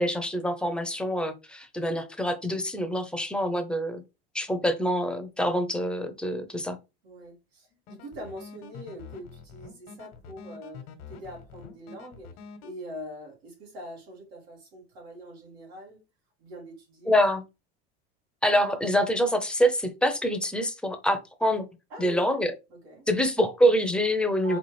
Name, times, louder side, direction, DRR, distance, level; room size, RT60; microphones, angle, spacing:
voice 1, 0.0-4.0 4.3-6.8 17.1-17.4 18.4-21.7 22.0-22.5 23.1-24.6, equal, 5° left, 0.6 m, -25 dB
voice 2, 7.0-12.4 12.6-16.0 16.4-17.2 21.9-22.2 22.7-23.1 24.4-24.6, equal, 85° right, 2.1 m, -43 dB
sound 1, 7.7-12.7, left 6 dB, 85° left, 1.1 m, -46 dB
4.1 x 2.4 x 3.2 m
supercardioid pair, 115°, 30 cm